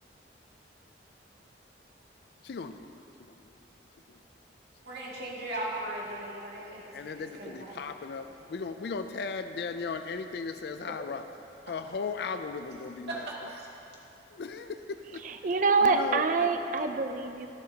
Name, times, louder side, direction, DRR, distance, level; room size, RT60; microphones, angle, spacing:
voice 1, 2.4-2.8 4.1-4.2 6.9-11.2 11.7-13.3 14.3-15.2 15.8-16.5, left 4 dB, 60° left, 9 dB, 0.4 m, -36 dB
voice 2, 4.8-6.8 7.3-7.7 13.1-13.7, right 1 dB, 60° right, -5 dB, 2.3 m, -37 dB
voice 3, 15.2-17.5, right 4 dB, 45° right, 7 dB, 0.5 m, -26 dB
18.5 x 8.0 x 2.9 m, 2.9 s
head